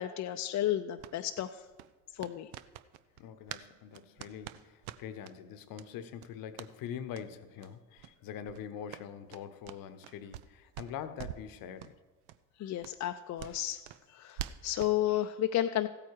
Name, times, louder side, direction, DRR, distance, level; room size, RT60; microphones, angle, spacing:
voice 1, 0.0-1.6 2.1-2.5 12.6-13.8 14.1-15.9, left 12 dB, 45° left, 7 dB, 0.5 m, -32 dB
sound 1, 1.0-3.7 3.9-5.3 5.7-5.9 6.2-6.7 7.1-7.3 7.6-7.7 8.0-8.1 8.4-10.5 10.7-11.5 11.8-11.9 12.3-12.4 12.8-15.0, right 12 dB, 75° right, 0.6 m, -45 dB
voice 2, 3.2-11.9, left 8 dB, 60° left, 12 dB, 0.9 m, -44 dB
14.5 x 8.6 x 4.7 m, 1.3 s
hypercardioid pair, 55°, 38 cm